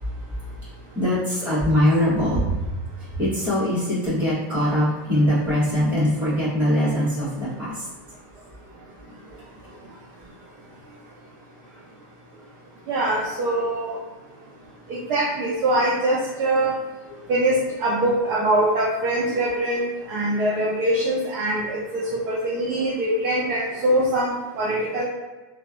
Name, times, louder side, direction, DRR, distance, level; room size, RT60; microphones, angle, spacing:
voice 1, 0.0-7.9 14.9-15.0 17.1-17.3, equal, 15° right, -11 dB, 1.4 m, -23 dB
voice 2, 12.9-14.0 15.1-16.7 17.3-25.0, right 1 dB, 30° right, -6 dB, 0.5 m, -23 dB
3.0 x 2.3 x 2.5 m, 1.2 s
supercardioid pair, 165°, 11 cm